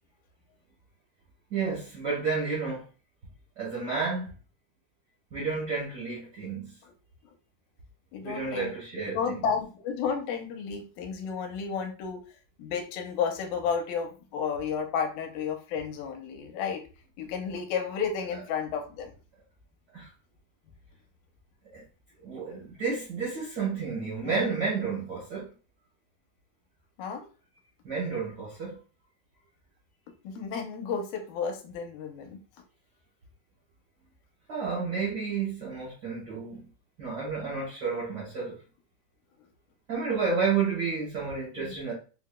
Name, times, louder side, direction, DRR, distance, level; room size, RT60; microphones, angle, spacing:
voice 1, 1.5-2.8 3.6-4.3 5.3-6.7 8.2-9.4 19.9-20.1 21.7-21.8 22.2-25.5 27.8-28.8 34.5-36.7 37.0-38.6 39.9-41.9, right 5 dB, 50° right, 1.3 m, -31 dB
voice 2, 8.1-8.7 9.1-12.2 12.6-16.8 17.2-19.1 24.2-24.6 27.0-27.2 30.2-32.4 41.6-41.7, left 6 dB, 85° left, 2.1 m, -32 dB
4.7 x 2.9 x 2.2 m
omnidirectional pair, 3.5 m